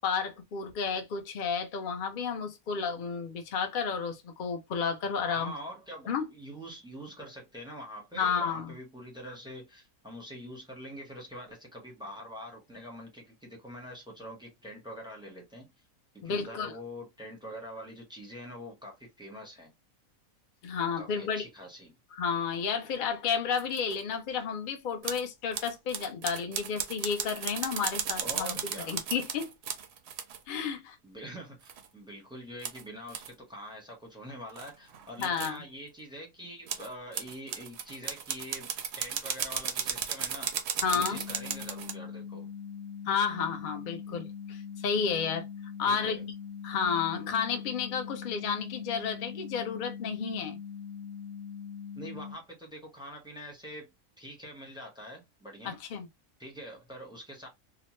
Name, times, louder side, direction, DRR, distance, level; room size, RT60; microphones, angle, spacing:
voice 1, 0.0-5.5 6.1-6.2 8.2-8.7 16.2-16.7 20.6-21.4 22.1-28.6 28.9-29.5 30.5-31.0 35.2-35.6 40.8-41.2 43.1-45.4 45.8-46.2 46.6-50.6 55.6-56.1, left 6 dB, 60° left, 0.5 m, -31 dB
voice 2, 5.1-15.7 16.1-19.7 21.0-21.9 28.2-29.0 31.0-40.5 40.9-42.5 45.8-46.2 52.0-53.9 54.2-55.8 56.4-57.5, equal, 5° right, 0.7 m, -44 dB
sound 1, 23.5-24.0 25.0-25.3 25.5-30.4 31.6-31.9 32.6-32.8 33.1-33.3 34.6-35.6 36.7-41.9, right 8 dB, 65° right, 0.7 m, -35 dB
sound 2, 41.0-52.4, left 7 dB, 90° left, 1.1 m, -42 dB
2.8 x 2.1 x 3.0 m
omnidirectional pair, 1.6 m